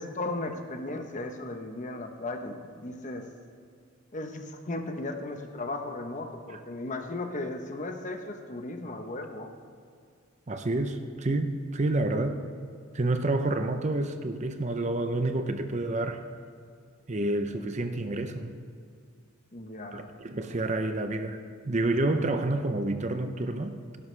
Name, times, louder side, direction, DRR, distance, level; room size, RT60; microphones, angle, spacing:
voice 1, 0.0-3.3 4.1-9.5 19.5-20.1, left 2 dB, 35° left, 5 dB, 0.9 m, -36 dB
voice 2, 10.5-12.4 12.9-16.3 17.1-18.5 19.9-23.8, right 2 dB, 35° right, 7 dB, 0.6 m, -29 dB
17.5 x 11.0 x 3.3 m, 2.2 s
head